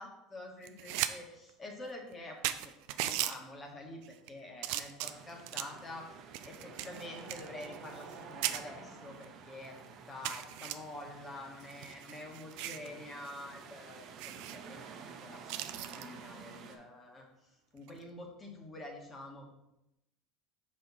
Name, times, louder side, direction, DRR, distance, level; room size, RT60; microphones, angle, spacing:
voice 1, 0.0-6.0 6.4-9.7 10.1-14.1 14.5-14.8 15.2-17.3 17.7-19.5, left 1 dB, 25° left, 1 dB, 1.5 m, -47 dB
sound 1, 0.6-1.1 1.5-1.6 2.1-2.2 2.4-3.3 4.0-4.3 4.6-5.8 6.3-8.2 8.4-8.6 9.2-9.3 9.6-9.7 10.2-10.7 11.6-12.9 13.3-13.4 13.7-13.8 14.2-14.6 15.5-16.1 17.8-18.0, right 14 dB, 75° right, 0.4 m, -37 dB
sound 2, 5.0-16.8, right 5 dB, 50° right, 0.8 m, -50 dB
5.5 x 4.4 x 4.2 m, 0.86 s
supercardioid pair, 110°, 0 cm